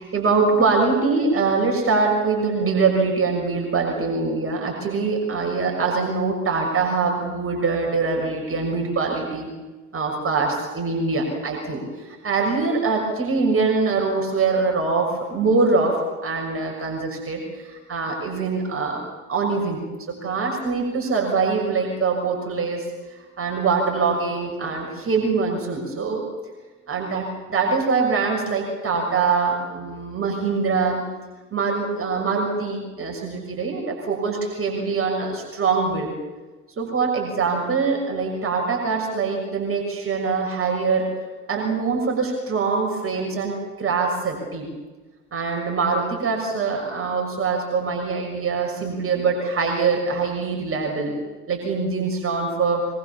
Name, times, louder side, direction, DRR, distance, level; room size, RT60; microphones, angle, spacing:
voice 1, 0.0-9.5 9.9-16.0 16.2-22.8 23.4-26.2 26.9-31.0 31.5-36.1 36.8-41.1 41.5-44.7 45.3-51.1 51.5-52.8, right 4 dB, 35° right, 0 dB, 6.7 m, -23 dB
24.5 x 22.5 x 7.3 m, 1.2 s
hypercardioid pair, 60°, 37 cm